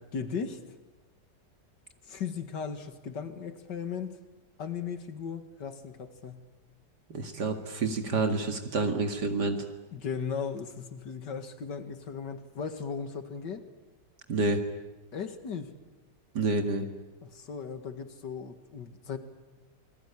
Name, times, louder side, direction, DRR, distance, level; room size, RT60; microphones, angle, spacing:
voice 1, 0.1-0.6 2.0-4.2 4.6-6.4 9.9-13.7 15.1-15.7 17.2-19.2, left 6 dB, 75° left, 9 dB, 2.5 m, -37 dB
voice 2, 7.1-9.7 14.3-14.6 16.3-16.9, right 3 dB, 65° right, 5 dB, 2.6 m, -28 dB
27.5 x 20.0 x 9.9 m, 1.1 s
omnidirectional pair, 1.9 m